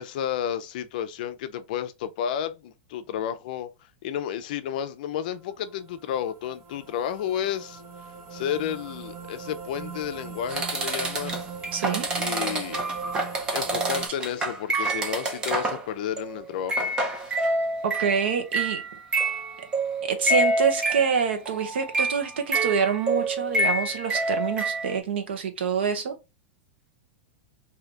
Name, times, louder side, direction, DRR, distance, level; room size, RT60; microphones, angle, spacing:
voice 1, 0.0-3.7 4.0-7.8 8.3-11.4 12.2-12.8 13.5-16.9, left 9 dB, 50° left, 0.5 m, -31 dB
sound 1, 5.6-14.1, right 6 dB, 35° right, 1.1 m, -39 dB
sound 2, 10.5-15.9 16.2-16.4 16.7-25.0, right 2 dB, 15° right, 0.5 m, -27 dB
voice 2, 11.7-12.0 17.8-18.8 20.0-26.1, right 6 dB, 85° right, 1.0 m, -26 dB
3.8 x 2.8 x 3.2 m
supercardioid pair, 170°, 6 cm